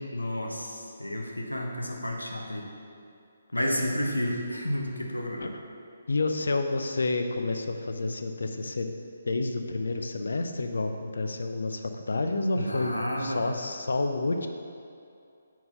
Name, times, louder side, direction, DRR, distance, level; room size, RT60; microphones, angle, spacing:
voice 1, 0.1-2.7 3.5-5.5 12.6-13.4, left 1 dB, 90° left, 1 dB, 0.8 m, -31 dB
voice 2, 6.1-8.9 9.3-14.5, left 2 dB, 70° left, 6 dB, 0.4 m, -29 dB
4.2 x 4.1 x 5.6 m, 2.5 s
figure-of-eight pair, 140°, 0 cm